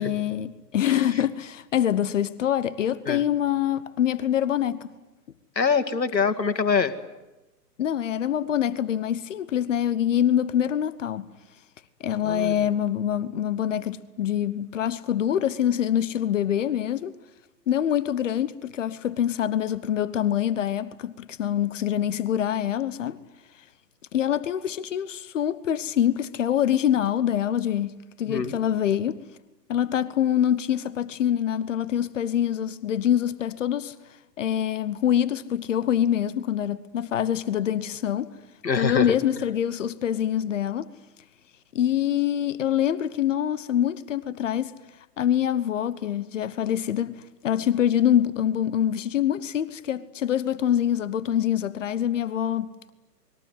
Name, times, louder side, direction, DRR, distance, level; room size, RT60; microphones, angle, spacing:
voice 1, 0.0-4.9 7.8-11.3 12.0-17.2 17.7-23.2 23.5-23.7 24.1-29.2 29.7-38.3 38.7-40.9 41.7-52.9, left 10 dB, 50° left, 1.2 m, -25 dB
voice 2, 5.6-6.9 12.2-12.6 28.3-28.6 38.6-39.2, left 5 dB, 80° left, 2.3 m, -24 dB
28.5 x 21.5 x 9.6 m
figure-of-eight pair, 125°, 50 cm